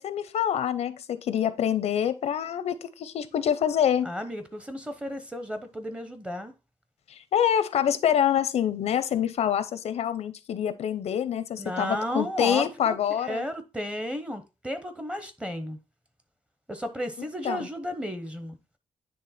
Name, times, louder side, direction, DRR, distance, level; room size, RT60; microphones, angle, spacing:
voice 1, 0.0-4.1 7.1-13.4 17.2-17.7, left 9 dB, 90° left, 0.7 m, -26 dB
voice 2, 4.0-6.5 11.6-13.0 13.2-15.8 16.7-18.6, equal, 10° right, 0.9 m, -33 dB
9.6 x 3.3 x 4.2 m
wide cardioid pair, 155°, 11 cm